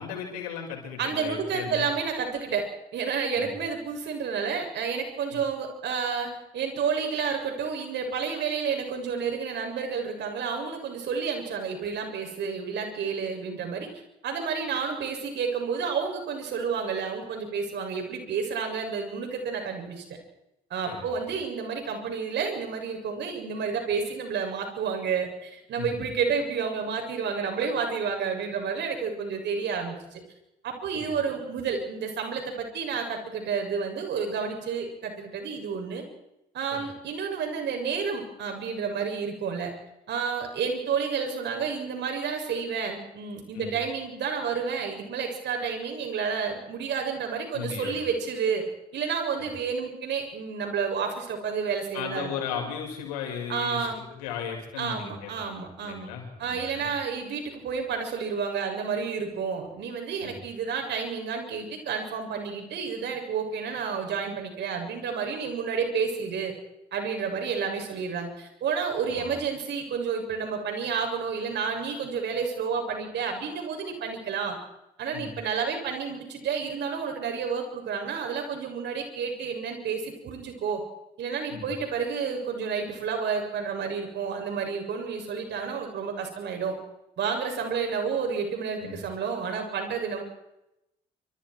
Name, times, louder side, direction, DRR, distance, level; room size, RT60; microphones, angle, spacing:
voice 1, 0.0-1.9 3.4-3.5 20.9-21.0 25.8-25.9 30.9-31.2 36.7-36.8 43.5-43.7 47.5-48.0 51.9-56.9 60.2-60.4 69.1-69.3 75.1-75.3 81.5-81.7 88.8-89.0, left 7 dB, 90° left, 2 dB, 6.3 m, -36 dB
voice 2, 1.0-2.7 2.9-13.9 14.2-20.0 20.7-30.2 30.6-36.0 36.5-39.7 40.1-48.6 48.9-52.6 53.5-54.0 54.8-56.1 56.4-66.5 66.9-74.6 75.0-80.8 81.2-86.8 87.2-90.2, right 6 dB, 65° right, 3 dB, 7.3 m, -30 dB
28.5 x 26.0 x 4.7 m, 0.88 s
hypercardioid pair, 55°, 19 cm